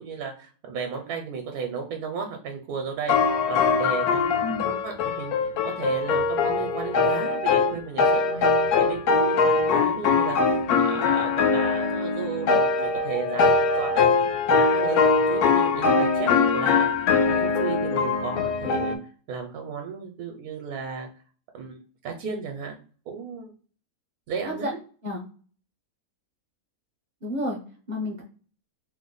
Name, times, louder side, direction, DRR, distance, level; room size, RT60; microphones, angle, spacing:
voice 1, 0.0-3.2 3.5-14.1 14.5-16.9 17.3-18.9 19.3-21.1 21.5-21.8 22.0-22.8 23.1-23.5 24.3-24.7, right 6 dB, 75° right, 3 dB, 1.1 m, -34 dB
sound 1, 3.1-19.0, left 4 dB, 80° left, 1.1 m, -22 dB
voice 2, 4.4-4.7 24.6-25.2 27.2-27.6 27.9-28.2, left 1 dB, 45° right, -2 dB, 0.6 m, -31 dB
3.0 x 2.1 x 3.8 m, 0.39 s
omnidirectional pair, 1.6 m